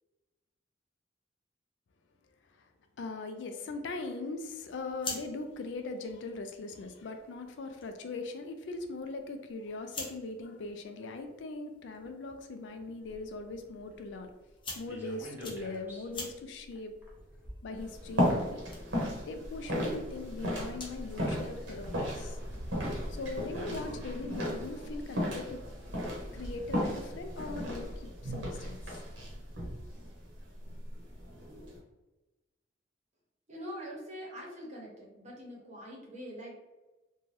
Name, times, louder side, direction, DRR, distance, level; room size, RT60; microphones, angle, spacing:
voice 1, 3.0-14.3 14.7-16.9 17.6-18.8 19.3-22.5 23.1-25.6 26.3-28.8, left 3 dB, 70° left, 6 dB, 0.4 m, -40 dB
sound 1, 4.7-21.1, left 3 dB, 30° left, 0.6 m, -49 dB
sound 2, 13.0-18.5 19.3-20.9 21.7-21.8 22.8-22.9 23.2-24.4 25.3-26.4 26.9-27.0 27.2-27.3, equal, 10° right, 0.6 m, -51 dB
sound 3, 17.8-31.8, equal, 80° right, 0.9 m, -35 dB
voice 2, 33.5-36.5, equal, 40° right, -3 dB, 0.8 m, -44 dB
2.6 x 2.2 x 3.2 m, 1.1 s
head